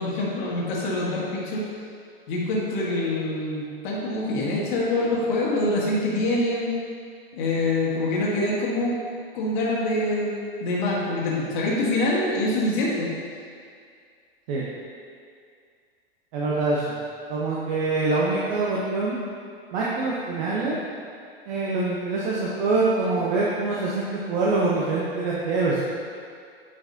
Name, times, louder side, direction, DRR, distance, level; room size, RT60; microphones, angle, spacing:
voice 1, 0.0-1.6 2.3-6.7 7.3-8.9 9.3-10.3 10.6-13.1, left 2 dB, 50° left, -5 dB, 1.7 m, -25 dB
voice 2, 16.3-17.0 17.3-19.2 19.7-20.7 21.5-25.8, right 3 dB, 45° right, -6 dB, 1.1 m, -24 dB
9.0 x 5.2 x 2.8 m, 2.2 s
figure-of-eight pair, 100°, 31 cm